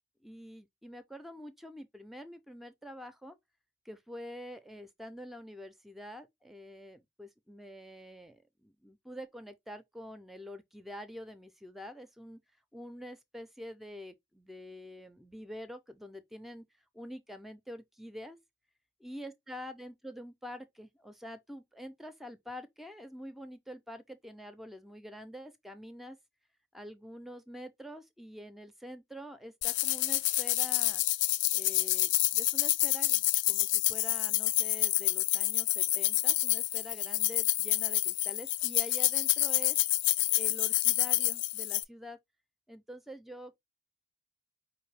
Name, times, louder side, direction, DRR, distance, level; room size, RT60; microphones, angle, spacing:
voice 1, 0.2-3.4 3.9-12.4 12.7-16.6 16.9-18.4 19.0-26.2 26.7-31.0 31.5-39.8 40.3-42.2 42.7-43.6, equal, ahead, 0.4 m, -46 dB
sound 1, 29.6-41.8, left 16 dB, 80° left, 0.3 m, -28 dB
4.8 x 2.6 x 3.2 m
head